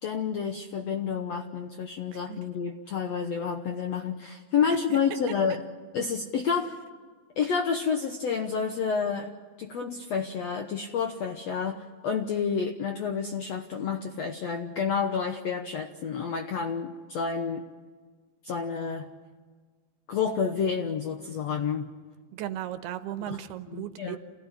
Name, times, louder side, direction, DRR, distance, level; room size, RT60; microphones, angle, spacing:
voice 1, 0.0-5.6 5.9-6.7 7.4-9.3 9.6-17.6 18.4-19.1 20.1-21.9 23.3-23.4 23.7-24.2, left 6 dB, 75° left, 5 dB, 1.5 m, -29 dB
voice 2, 22.3-24.2, right 12 dB, 85° right, 10 dB, 3.0 m, -36 dB
28.0 x 17.0 x 9.9 m, 1.5 s
omnidirectional pair, 4.5 m